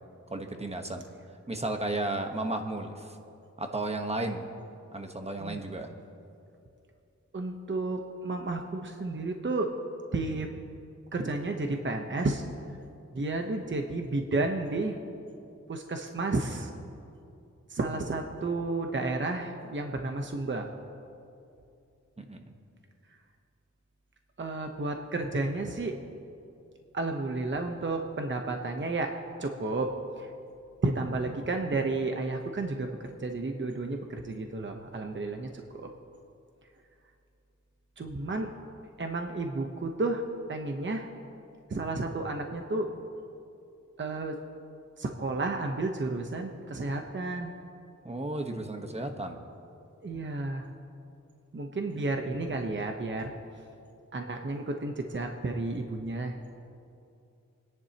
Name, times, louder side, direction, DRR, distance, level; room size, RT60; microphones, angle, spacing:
voice 1, 0.3-1.0 1.5-3.2 3.6-4.4 4.9-5.9 22.2-22.5 48.0-49.4, right 2 dB, 20° right, 4 dB, 1.2 m, -33 dB
voice 2, 7.3-9.7 10.1-10.5 11.1-12.4 13.1-15.0 15.7-16.7 17.7-20.7 24.4-25.9 26.9-29.1 29.4-29.9 30.2-30.3 30.8-32.9 33.2-35.9 38.0-38.5 39.0-40.2 40.5-41.1 41.7-42.9 44.0-44.3 45.0-47.5 50.0-50.7 51.5-53.3 54.1-56.4, right 2 dB, 40° right, 3 dB, 1.0 m, -32 dB
28.5 x 10.5 x 2.9 m, 2.6 s
wide cardioid pair, 100°, 30 cm